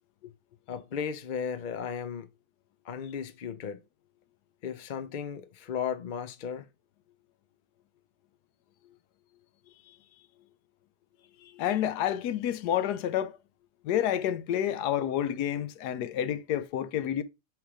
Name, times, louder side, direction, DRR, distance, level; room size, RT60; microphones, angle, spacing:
voice 1, 0.7-2.3 2.8-3.8 4.6-6.7, left 7 dB, 70° left, 0.4 m, -35 dB
voice 2, 11.4-13.4 13.8-17.2, left 10 dB, 85° left, 1.2 m, -29 dB
6.4 x 3.2 x 4.9 m
omnidirectional pair, 1.7 m